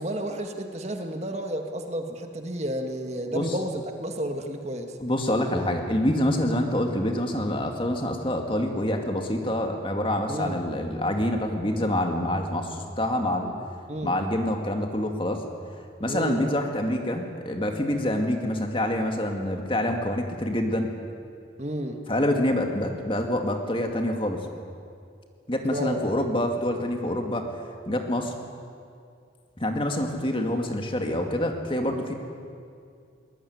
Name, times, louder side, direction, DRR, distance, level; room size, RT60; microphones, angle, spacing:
voice 1, 0.0-4.9 10.3-10.6 13.9-14.1 16.1-16.4 21.6-22.0 25.7-26.0, right 1 dB, 35° right, 5 dB, 1.8 m, -31 dB
voice 2, 5.0-13.5 14.0-15.4 16.0-20.9 22.1-24.4 25.5-27.4 27.9-28.3 29.6-32.1, left 1 dB, 25° left, 3 dB, 2.4 m, -26 dB
22.5 x 21.0 x 9.5 m, 2.3 s
head